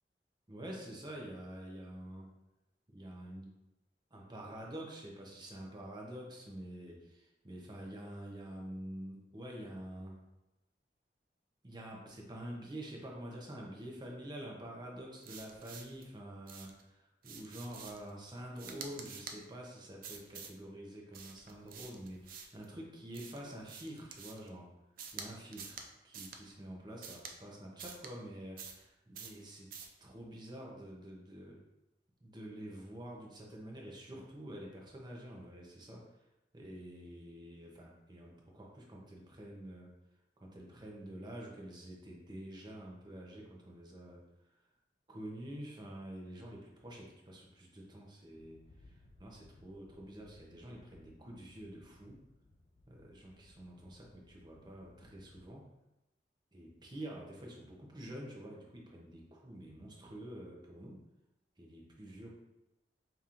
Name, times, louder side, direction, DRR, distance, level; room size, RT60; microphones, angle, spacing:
voice 1, 0.5-2.3 2.9-3.5 4.1-10.2 11.6-24.7 25.1-29.7 30.0-31.6 32.2-36.0 36.5-39.9 40.4-44.2 45.1-48.6 48.9-52.2 52.9-55.6 56.5-61.0 61.6-62.4, right 1 dB, 25° right, -1 dB, 0.8 m, -47 dB
sound 1, 15.2-16.0 16.5-16.8 17.2-18.1 18.5-19.4 20.0-20.6 21.1-22.6 23.1-24.5 25.0-25.3 25.5-25.9 26.1-26.4 27.0-27.3 27.8-28.1 28.6-28.9 29.1-29.4 29.7-30.0, right 6 dB, 55° right, 0.4 m, -48 dB
sound 2, 48.3-55.5, left 2 dB, 45° left, 0.4 m, -63 dB
5.2 x 2.9 x 2.5 m, 0.95 s
head